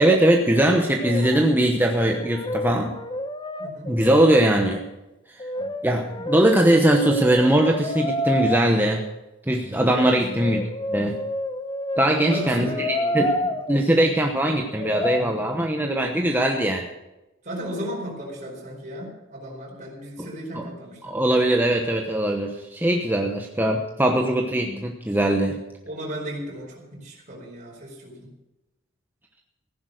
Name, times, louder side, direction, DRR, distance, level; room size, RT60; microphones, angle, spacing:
voice 1, 0.0-2.9 3.9-4.8 5.8-9.0 9.5-10.6 10.9-11.2 12.0-13.3 13.7-16.8 20.5-20.7 21.0-25.6, right 1 dB, 10° right, 2 dB, 1.0 m, -21 dB
Brass instrument, 0.9-1.6 1.9-4.4 5.4-8.6 10.0-13.8 14.8-15.2, left 1 dB, 25° left, 1.0 m, -29 dB
voice 2, 3.6-4.0 9.9-10.1 12.0-13.3 17.4-21.1 25.8-28.3, equal, 40° right, -2 dB, 4.6 m, -35 dB
15.5 x 11.0 x 6.5 m, 0.99 s
head